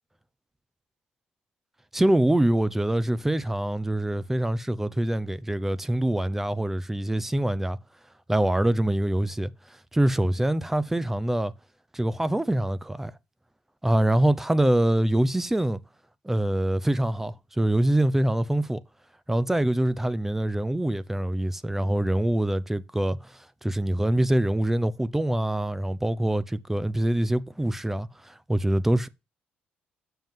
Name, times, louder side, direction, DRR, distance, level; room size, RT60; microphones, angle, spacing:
voice 1, 1.9-7.8 8.3-9.5 9.9-11.5 11.9-13.1 13.8-15.8 16.2-18.8 19.3-29.1, right 1 dB, 10° right, 0.6 m, -24 dB
7.5 x 5.6 x 7.3 m
cardioid pair, 95°, 4 cm